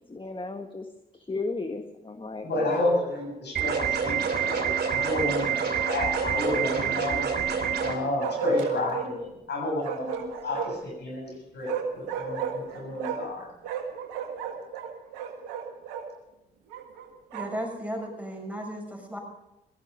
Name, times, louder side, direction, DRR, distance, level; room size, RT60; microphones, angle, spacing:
voice 1, 0.1-0.9 1.1-3.1 4.7-4.9, left 3 dB, 25° left, 6 dB, 1.5 m, -35 dB
voice 2, 2.4-7.3 7.8-13.5, left 1 dB, 60° left, 0 dB, 7.0 m, -31 dB
Bark, 2.7-3.3 5.8-6.9 8.2-9.1 9.8-10.9 11.6-13.4 13.6-16.1 16.7-17.7, right 7 dB, 90° right, 1.6 m, -35 dB
sound 1, 3.6-7.9, right 7 dB, 60° right, 3.3 m, -27 dB
voice 3, 17.3-19.2, equal, 5° right, 2 dB, 6.4 m, -35 dB
18.0 x 14.0 x 5.2 m, 0.90 s
hypercardioid pair, 40°, 19 cm